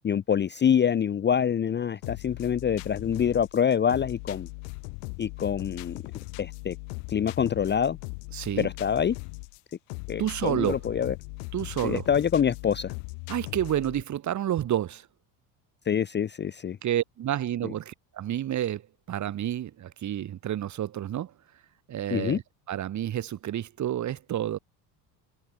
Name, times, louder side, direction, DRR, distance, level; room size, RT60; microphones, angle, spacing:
voice 1, 0.0-4.5 5.2-6.0 6.4-6.8 7.1-8.0 8.6-9.2 10.1-11.1 11.8-12.9 15.9-16.8 17.6-17.7 22.1-22.4, left 8 dB, 25° left, 0.7 m, -26 dB
sound 1, 2.0-14.0, left 40 dB or more, 80° left, 1.9 m, -39 dB
voice 2, 8.3-8.7 10.2-10.8 11.5-12.0 13.3-15.1 16.8-21.3 21.9-22.4 22.7-24.6, right 11 dB, 40° right, 1.4 m, -30 dB
supercardioid pair, 105°, 44 cm